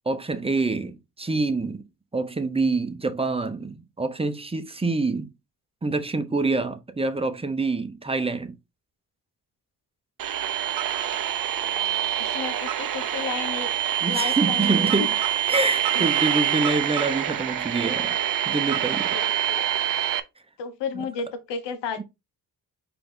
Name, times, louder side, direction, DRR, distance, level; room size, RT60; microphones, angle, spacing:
voice 1, 0.1-1.9 2.1-5.3 5.8-8.6 14.0-15.2 15.5-18.2 18.5-19.2 20.9-21.1 22.0-22.1, right 3 dB, 15° right, 0.7 m, -26 dB
sound 1, 10.2-20.2, right 11 dB, 55° right, 0.6 m, -25 dB
voice 2, 11.6-13.7 14.0-15.1 15.9-16.1 19.1-19.6 20.6-22.0, left 6 dB, 85° left, 1.0 m, -33 dB
4.7 x 2.9 x 3.8 m
cardioid pair, 80°, 41 cm